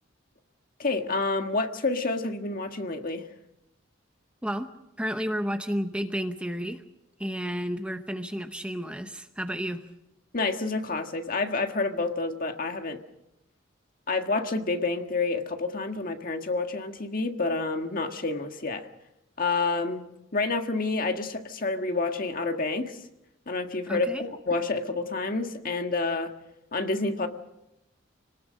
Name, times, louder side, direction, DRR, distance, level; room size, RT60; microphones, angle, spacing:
voice 1, 0.8-3.3 10.3-13.0 14.1-18.9 19.4-20.0 20.3-23.0 23.5-26.3 26.7-27.3, left 3 dB, 45° left, 6 dB, 1.6 m, -28 dB
voice 2, 5.0-6.8 7.2-9.8 23.9-24.2, equal, 5° right, 7 dB, 0.8 m, -31 dB
26.0 x 19.5 x 6.4 m, 0.86 s
head